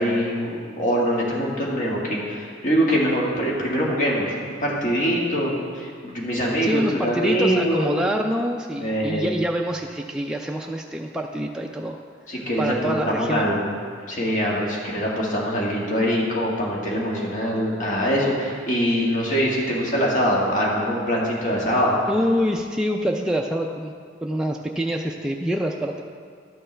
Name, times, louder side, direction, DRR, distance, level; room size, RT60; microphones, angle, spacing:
voice 1, 0.0-7.9 8.8-9.3 12.3-13.7 14.1-22.0, equal, 45° left, -4 dB, 1.7 m, -23 dB
voice 2, 6.6-12.0 12.6-13.6 22.1-23.9 24.2-26.0, equal, 5° right, 0 dB, 0.3 m, -26 dB
12.0 x 6.7 x 3.3 m, 2.1 s
head